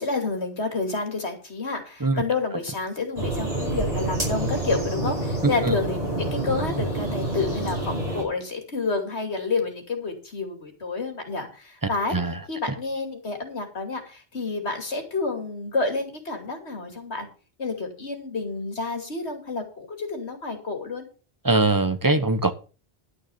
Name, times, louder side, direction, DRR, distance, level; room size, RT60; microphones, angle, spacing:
voice 1, 0.0-12.2 12.5-17.3 17.6-21.1, left 3 dB, 85° left, 5 dB, 2.9 m, -29 dB
sound 1, 3.2-8.2, right 2 dB, 35° right, 5.5 m, -27 dB
voice 2, 21.4-22.5, right 2 dB, 20° right, 10 dB, 1.0 m, -21 dB
11.5 x 6.4 x 7.0 m, 0.36 s
omnidirectional pair, 1.1 m